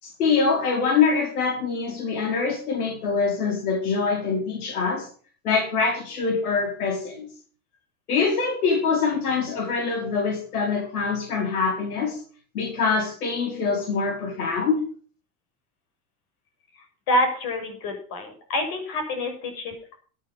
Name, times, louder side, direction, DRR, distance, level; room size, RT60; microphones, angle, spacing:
voice 1, 0.0-5.1 5.4-7.3 8.1-12.2 12.5-14.8, left 5 dB, 85° left, 1 dB, 4.8 m, -24 dB
voice 2, 17.1-20.0, left 1 dB, 55° left, 5 dB, 7.0 m, -27 dB
14.0 x 9.4 x 5.8 m, 0.42 s
supercardioid pair, 110°, 43 cm